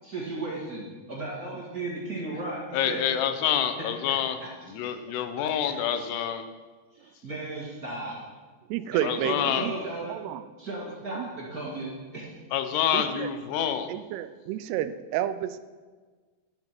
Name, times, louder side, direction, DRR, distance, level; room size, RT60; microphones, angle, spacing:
voice 1, 0.0-3.0 4.4-4.5 4.8-4.9 6.9-8.2 8.9-10.2 10.6-12.3, right 2 dB, 35° right, -5 dB, 1.5 m, -35 dB
voice 2, 2.7-4.4 4.7-6.4 9.0-9.7 12.5-13.9, left 9 dB, 85° left, 9 dB, 3.0 m, -27 dB
voice 3, 8.7-9.7 10.1-10.5 11.2-11.3 12.9-13.3 13.9-15.6, right 12 dB, 85° right, 13 dB, 2.6 m, -31 dB
11.0 x 7.9 x 6.0 m, 1.4 s
omnidirectional pair, 4.7 m